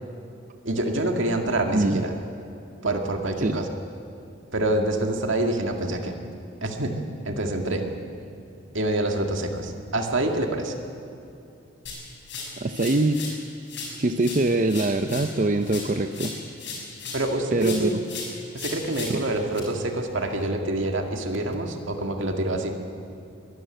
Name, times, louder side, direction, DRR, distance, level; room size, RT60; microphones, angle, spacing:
voice 1, 0.6-2.1 2.8-3.7 4.5-6.1 6.6-6.9 7.2-7.8 8.7-10.7 17.1-17.9 18.5-22.7, right 1 dB, 70° right, 3 dB, 2.0 m, -26 dB
voice 2, 1.7-2.0 3.4-3.6 12.6-13.2 14.0-16.3 17.5-18.0 19.1-19.2, right 2 dB, 40° right, 7 dB, 0.6 m, -23 dB
sound 1, 11.9-13.4 13.7-17.3 17.6-19.6, left 4 dB, 65° left, 6.3 m, -37 dB
22.0 x 13.0 x 9.0 m, 2.7 s
head